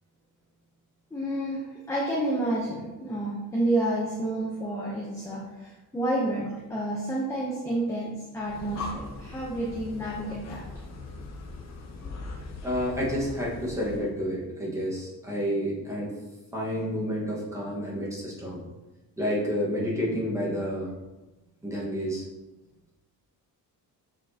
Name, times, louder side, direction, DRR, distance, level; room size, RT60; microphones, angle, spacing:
voice 1, 1.1-10.6, right 1 dB, 10° left, -5 dB, 0.8 m, -30 dB
Breathing, 8.3-14.1, left 3 dB, 45° left, 0.9 m, -40 dB
voice 2, 12.6-16.1 16.5-18.6 19.2-20.9 21.6-22.2, equal, 10° right, -5 dB, 1.5 m, -30 dB
7.5 x 4.5 x 2.9 m, 1.1 s
cardioid pair, 160°, 37 cm